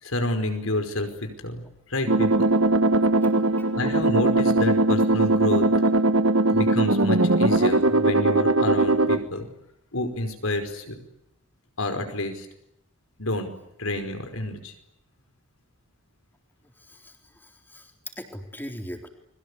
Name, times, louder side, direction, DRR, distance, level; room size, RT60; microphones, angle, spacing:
voice 1, 0.0-1.6 1.9-2.5 3.7-5.7 6.5-9.5 9.9-11.0 11.8-12.5 13.2-13.5 13.8-14.7, left 1 dB, 75° left, 7 dB, 5.0 m, -29 dB
sound 1, 2.1-9.2, right 2 dB, 65° right, 1.5 m, -20 dB
voice 2, 3.2-3.7 5.7-5.9 16.8-17.9 18.2-19.1, equal, 10° left, 3 dB, 3.8 m, -41 dB
30.0 x 23.0 x 8.4 m, 0.81 s
head